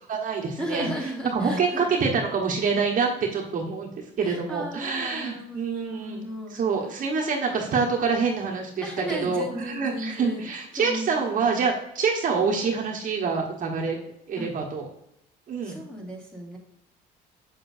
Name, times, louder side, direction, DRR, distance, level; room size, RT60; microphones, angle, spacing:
voice 1, 0.0-0.9 1.3-3.9 4.2-6.2 6.5-8.8 9.1-14.0 14.3-14.9 15.5-15.8, right 5 dB, 50° right, 0 dB, 1.3 m, -26 dB
voice 2, 0.6-2.0 4.2-6.6 7.5-7.8 8.8-11.6 14.4-14.5 15.6-16.6, equal, 5° left, -3 dB, 2.3 m, -36 dB
7.3 x 6.6 x 2.7 m, 0.79 s
cardioid pair, 110°, 17 cm